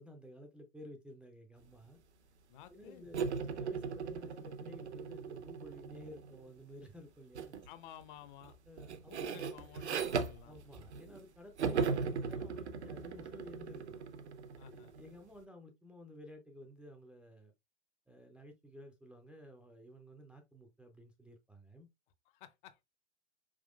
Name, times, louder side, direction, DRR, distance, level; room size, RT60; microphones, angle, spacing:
voice 1, 0.0-2.0 2.7-7.6 8.7-9.5 10.4-14.0 14.7-17.5 18.1-21.9, left 1 dB, 5° right, 0.4 m, -53 dB
voice 2, 2.5-3.1 7.7-8.6 9.1-10.5 14.6-14.9 22.3-22.8, left 11 dB, 45° left, 0.7 m, -54 dB
sound 1, 3.1-6.4 7.3-7.7 8.0-11.2 11.6-15.1, right 5 dB, 75° right, 0.7 m, -38 dB
4.6 x 3.6 x 2.3 m
figure-of-eight pair, 95°, 34 cm